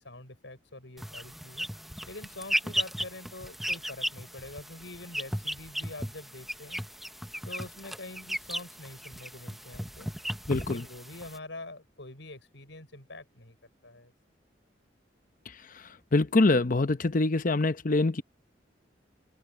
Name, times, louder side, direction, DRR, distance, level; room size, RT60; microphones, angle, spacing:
voice 1, 0.0-1.7 2.1-6.8 7.5-10.1 10.5-13.6 13.8-14.1, left 2 dB, 80° left, 6.3 m, -45 dB
sound 1, 1.0-11.4, equal, ahead, 1.0 m, -36 dB
voice 2, 10.5-10.8 16.1-18.2, left 2 dB, 50° left, 0.9 m, -24 dB
head